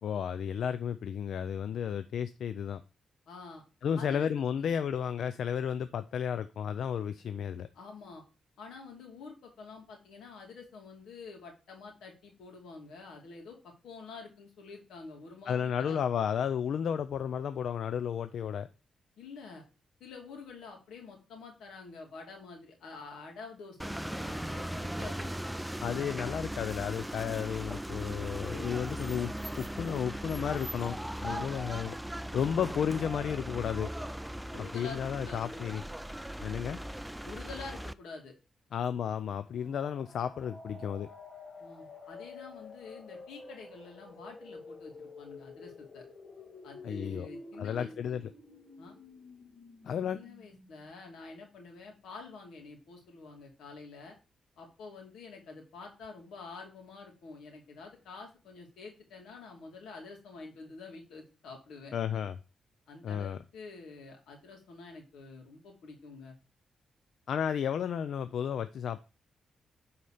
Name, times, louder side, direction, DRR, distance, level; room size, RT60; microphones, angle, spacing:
voice 1, 0.0-2.8 3.8-7.7 15.5-18.7 25.8-31.0 31.2-32.0 32.3-33.9 34.7-35.8 36.4-36.8 38.7-41.1 46.8-47.3 47.6-48.3 49.8-50.2 61.9-62.4 63.0-63.4 67.3-69.0, left 8 dB, 70° left, 0.4 m, -33 dB
voice 2, 3.3-3.6 4.0-4.3 4.5-4.8 7.7-8.2 8.6-16.0 19.2-19.6 20.0-25.3 26.0-26.2 28.5-28.7 31.3-31.5 34.5-35.8 37.2-38.4 41.6-46.0 46.6-48.2 48.8-49.0 50.1-54.2 54.6-62.2 62.9-66.4, left 4 dB, 90° left, 2.8 m, -48 dB
sound 1, 23.8-37.9, right 1 dB, 5° right, 0.3 m, -38 dB
sound 2, 39.5-51.2, left 3 dB, 40° left, 1.9 m, -50 dB
9.4 x 4.3 x 5.0 m
cardioid pair, 115°, 0 cm